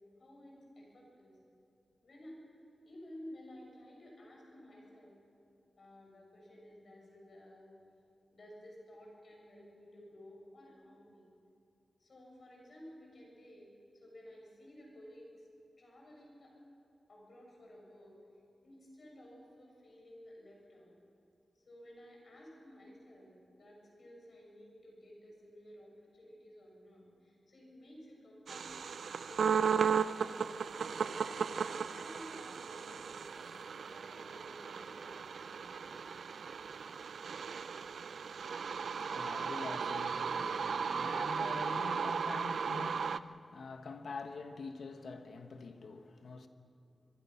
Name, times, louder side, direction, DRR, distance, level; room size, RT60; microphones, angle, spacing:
voice 1, 0.2-1.4 2.0-2.4 2.8-5.2 5.8-7.7 8.3-11.3 12.0-15.5 15.8-16.5 17.1-18.2 18.6-20.9 21.6-29.0 29.3-35.9, equal, 50° left, 6.9 m, -54 dB
sound 1, 28.5-43.2, right 6 dB, 75° right, 0.5 m, -36 dB
voice 2, 38.3-46.5, left 4 dB, 70° left, 1.4 m, -46 dB
24.5 x 23.5 x 5.9 m
wide cardioid pair, 165°, 0 cm